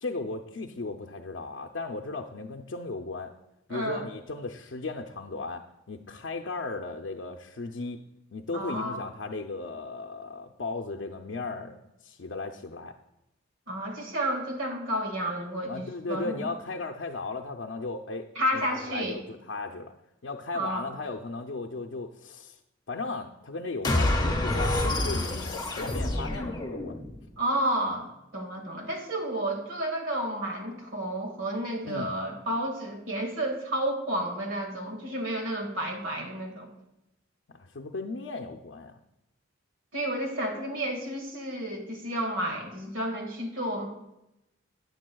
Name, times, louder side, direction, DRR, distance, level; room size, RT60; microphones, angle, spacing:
voice 1, 0.0-3.3 3.7-8.0 8.3-12.9 15.7-18.3 18.5-19.9 20.2-22.6 22.9-27.0 31.8-32.1 37.5-39.0, left 3 dB, 70° left, 2 dB, 0.5 m, -36 dB
voice 2, 3.7-4.1 8.5-9.0 13.7-16.5 18.4-19.2 20.5-20.9 27.4-28.1 28.3-36.7 39.9-43.9, right 1 dB, 80° right, 3 dB, 1.9 m, -31 dB
sound 1, 23.8-27.2, left 1 dB, 20° left, 1.2 m, -27 dB
13.5 x 9.3 x 2.3 m, 0.90 s
head